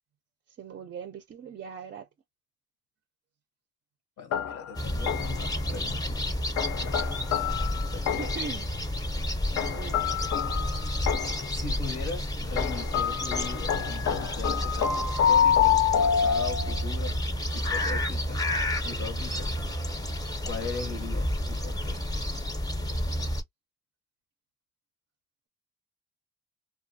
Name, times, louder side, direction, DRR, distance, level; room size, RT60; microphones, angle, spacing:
voice 1, 0.6-2.1 8.2-8.7 9.5-10.0, right 6 dB, 35° right, 0.4 m, -40 dB
voice 2, 4.2-6.4 6.8-7.3 7.6-8.3 11.5-17.2 17.5-18.5 18.8-19.5 20.4-22.0, left 5 dB, 90° left, 0.9 m, -39 dB
sound 1, 4.3-5.5 6.6-8.5 9.6-11.5 12.6-16.8, left 8 dB, 60° left, 0.5 m, -27 dB
sound 2, 4.7-23.4, left 1 dB, 15° left, 0.5 m, -31 dB
2.4 x 2.2 x 2.6 m
cardioid pair, 90°, 30 cm